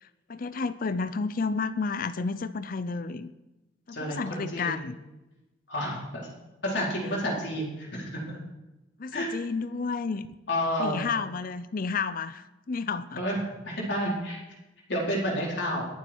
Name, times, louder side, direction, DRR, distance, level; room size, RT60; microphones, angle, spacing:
voice 1, 0.0-3.3 3.9-5.0 9.0-10.3 10.8-13.2, left 4 dB, 50° left, 13 dB, 0.5 m, -31 dB
voice 2, 3.9-4.8 5.7-6.3 6.6-8.4 9.1-9.3 10.5-11.1 13.2-14.4 14.9-15.8, equal, 65° left, -3 dB, 4.3 m, -30 dB
21.5 x 7.4 x 4.5 m, 1.0 s
head